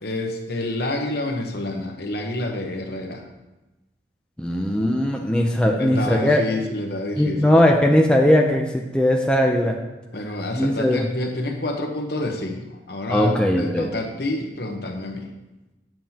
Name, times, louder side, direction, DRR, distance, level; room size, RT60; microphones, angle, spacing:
voice 1, 0.0-3.3 5.8-7.8 10.1-15.3, left 2 dB, 60° left, 3 dB, 1.0 m, -28 dB
voice 2, 4.4-6.4 7.2-9.8 10.6-11.0 13.1-13.9, left 1 dB, 5° left, 0 dB, 0.4 m, -19 dB
9.1 x 7.5 x 2.8 m, 1.0 s
head